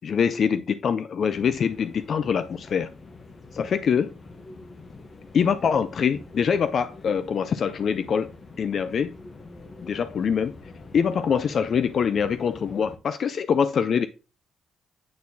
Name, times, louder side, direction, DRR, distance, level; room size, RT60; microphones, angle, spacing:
voice 1, 0.0-2.9 3.5-4.1 5.3-8.3 8.6-9.1 9.8-10.6 10.9-14.1, left 7 dB, 55° left, 0.3 m, -24 dB
sound 1, 1.2-13.0, left 3 dB, 35° left, 0.9 m, -45 dB
8.4 x 4.2 x 2.7 m
cardioid pair, 90°, 0 cm